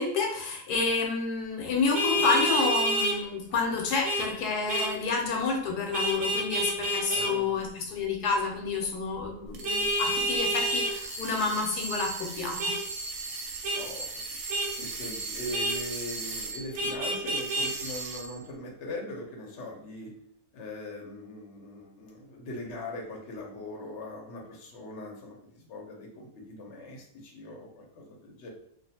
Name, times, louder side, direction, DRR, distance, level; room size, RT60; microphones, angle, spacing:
voice 1, 0.0-12.7, left 4 dB, 80° left, 1 dB, 1.1 m, -29 dB
Vehicle horn car horn honking, 1.9-3.2 4.0-4.3 4.7-4.9 5.9-7.3 9.6-10.9 12.6-12.8 13.6-13.8 14.5-14.7 15.5-15.8 16.8-17.7, right 1 dB, 90° right, 0.5 m, -28 dB
voice 2, 7.1-7.7 13.7-14.1 14.8-20.1 20.5-28.5, left 1 dB, 55° left, -1 dB, 0.9 m, -41 dB
sound 1, 9.5-16.9 17.3-18.4, right 3 dB, 70° right, 0.9 m, -38 dB
2.4 x 2.4 x 2.7 m, 0.69 s
omnidirectional pair, 1.7 m